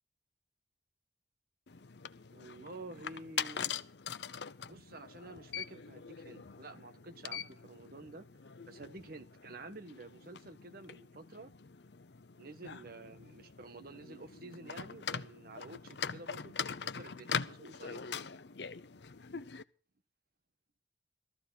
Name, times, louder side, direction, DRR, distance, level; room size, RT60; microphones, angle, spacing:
sound 1, 1.7-19.6, left 7 dB, 65° left, 0.7 m, -43 dB
voice 1, 2.3-3.8 4.7-11.5 12.4-18.1, right 2 dB, 55° right, 1.3 m, -50 dB
16.5 x 14.0 x 4.1 m
head